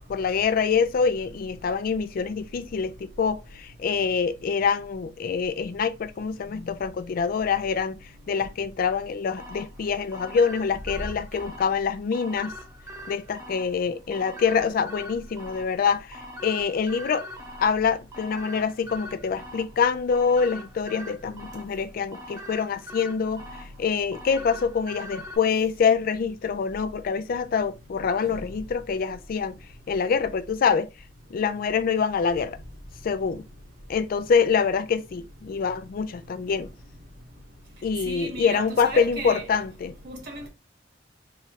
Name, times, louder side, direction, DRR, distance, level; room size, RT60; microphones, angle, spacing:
voice 1, 0.1-8.0 8.3-12.5 13.1-17.3 17.6-23.4 23.8-29.6 29.9-30.9 31.3-32.6 33.0-33.4 33.9-36.7 37.8-39.9, left 6 dB, 50° left, 0.3 m, -25 dB
sound 1, 9.4-25.4, equal, 15° right, 0.7 m, -43 dB
voice 2, 38.1-39.5 40.0-40.5, right 2 dB, 60° right, 1.8 m, -35 dB
3.6 x 3.1 x 2.8 m
head